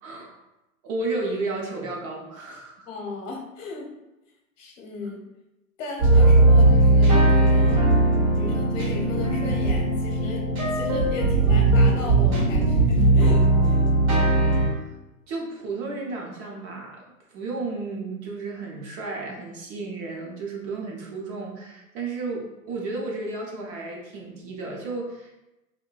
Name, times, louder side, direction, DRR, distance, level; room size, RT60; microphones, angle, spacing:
voice 1, 0.0-0.3 0.8-2.9 14.7-14.9 15.3-17.0 17.3-25.3, right 3 dB, 40° right, -1 dB, 0.7 m, -33 dB
voice 2, 2.9-3.9 4.6-5.2 5.8-7.8 8.3-13.9, left 3 dB, 60° left, 1 dB, 0.8 m, -36 dB
sound 1, 6.0-14.7, right 2 dB, 75° right, 1.0 m, -19 dB
2.6 x 2.2 x 2.3 m, 0.96 s
hypercardioid pair, 105°, 43 cm